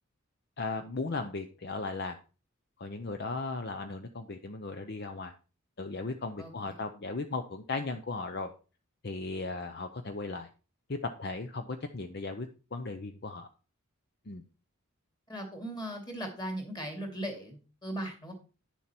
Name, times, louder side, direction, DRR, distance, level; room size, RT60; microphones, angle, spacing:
voice 1, 0.6-2.2 2.8-5.3 5.8-8.5 9.0-10.5 11.0-13.5 14.3-14.4, left 3 dB, 50° left, 7 dB, 0.7 m, -36 dB
voice 2, 6.4-6.7 15.3-18.3, right 1 dB, 20° left, 3 dB, 2.6 m, -38 dB
10.0 x 7.2 x 4.4 m, 0.35 s
head